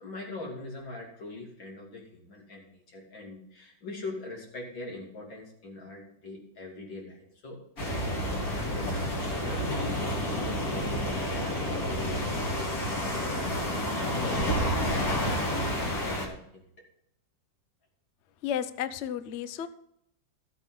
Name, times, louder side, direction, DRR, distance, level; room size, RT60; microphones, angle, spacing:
voice 1, 0.0-16.6, left 2 dB, 80° left, -1 dB, 3.7 m, -43 dB
sound 1, 7.8-16.3, equal, 50° left, 2.7 m, -29 dB
voice 2, 18.4-19.7, left 9 dB, 65° left, 12 dB, 0.6 m, -32 dB
14.0 x 8.2 x 3.9 m, 0.74 s
omnidirectional pair, 2.0 m